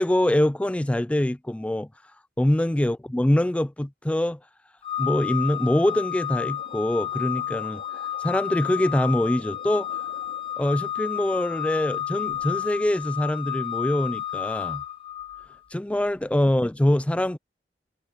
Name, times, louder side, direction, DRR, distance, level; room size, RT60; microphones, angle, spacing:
voice 1, 0.0-1.9 2.4-4.4 5.0-7.8 8.2-10.0 10.6-14.8 15.7-17.4, left 1 dB, 5° left, 0.3 m, -24 dB
Organ, 4.8-15.6, left 11 dB, 30° left, 1.6 m, -31 dB
sound 1, 5.7-11.0 11.3-12.0 12.3-13.2, left 2 dB, 60° left, 2.3 m, -49 dB
head